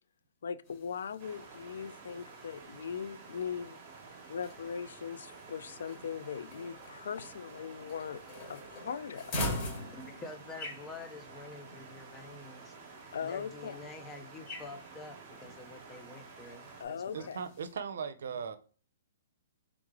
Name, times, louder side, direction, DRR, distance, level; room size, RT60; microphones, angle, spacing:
voice 1, 0.4-3.8 4.3-8.2 8.5-9.5 13.1-13.8 16.8-17.4, left 7 dB, 75° left, 0.4 m, -40 dB
sound 1, 0.6-17.7, left 1 dB, 30° left, 2.0 m, -45 dB
sound 2, 1.2-16.8, right 4 dB, 35° right, 1.1 m, -51 dB
voice 2, 10.0-12.7 13.2-17.3, left 3 dB, 15° left, 0.6 m, -48 dB
voice 3, 17.1-18.6, right 6 dB, 70° right, 0.6 m, -38 dB
3.6 x 3.2 x 3.6 m
hypercardioid pair, 160°, 0 cm